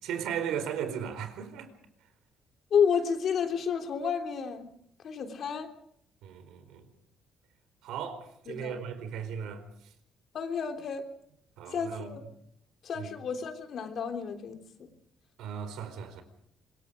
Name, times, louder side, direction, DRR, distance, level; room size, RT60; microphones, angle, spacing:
voice 1, 0.0-1.7 6.2-6.8 7.8-9.6 11.6-12.2 12.9-13.1 15.4-16.2, right 8 dB, 85° right, 4.3 m, -36 dB
voice 2, 2.7-4.7 5.0-5.7 8.5-8.8 10.3-11.1 11.7-12.2 12.8-14.9, left 7 dB, 50° left, 3.3 m, -30 dB
26.0 x 22.5 x 5.1 m
cardioid pair, 135°, 0 cm